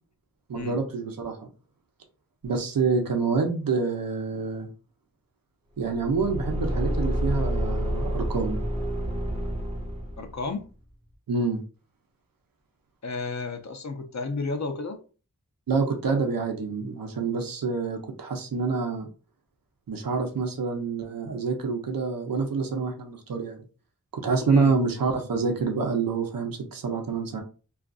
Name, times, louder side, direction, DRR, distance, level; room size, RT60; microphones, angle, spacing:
voice 1, 0.5-1.4 2.4-4.7 5.8-8.6 11.3-11.6 15.7-19.1 19.9-23.6 24.1-27.4, right 4 dB, 85° right, 3 dB, 0.6 m, -27 dB
Car / Engine, 5.8-10.4, equal, 20° right, 0.6 m, -29 dB
voice 2, 10.2-10.7 13.0-15.0 24.5-24.8, left 3 dB, 55° left, 7 dB, 0.6 m, -32 dB
2.5 x 2.4 x 2.3 m, 0.36 s
wide cardioid pair, 50°, 34 cm